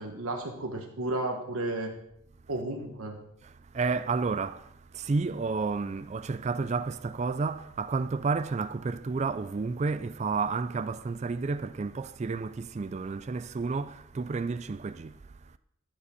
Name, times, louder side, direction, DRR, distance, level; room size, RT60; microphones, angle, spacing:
voice 1, 0.0-2.0 2.5-3.2, right 2 dB, 75° right, 1.2 m, -33 dB
voice 2, 3.4-15.1, right 4 dB, 30° right, 0.3 m, -31 dB
14.0 x 5.4 x 6.8 m
head